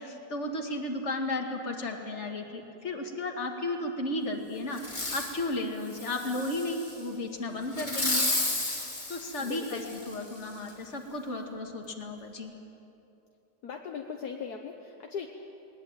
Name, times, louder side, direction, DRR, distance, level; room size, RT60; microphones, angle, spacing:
voice 1, 0.0-8.3 9.1-12.5, left 2 dB, 40° left, 3 dB, 2.2 m, -34 dB
Fireworks, 4.8-5.4 5.9-7.0 7.7-10.1 10.7-10.8, left 2 dB, 25° left, 2.8 m, -32 dB
voice 2, 9.4-9.9 13.6-15.3, left 6 dB, 65° left, 3 dB, 1.6 m, -38 dB
20.0 x 19.5 x 8.9 m, 2.9 s
omnidirectional pair, 1.8 m